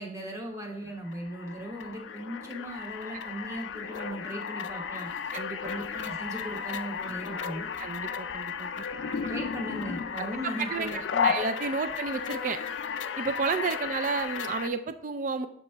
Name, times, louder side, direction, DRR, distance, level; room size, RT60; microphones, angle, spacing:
voice 1, 0.0-5.1 5.6-7.7 9.1-11.3, right 1 dB, 15° right, 0 dB, 1.0 m, -38 dB
sound 1, 1.1-14.7, left 6 dB, 90° left, 0.4 m, -34 dB
voice 2, 7.8-8.8 10.4-12.6 13.2-15.5, right 4 dB, 45° right, 10 dB, 0.3 m, -31 dB
7.5 x 3.0 x 4.4 m, 0.65 s
head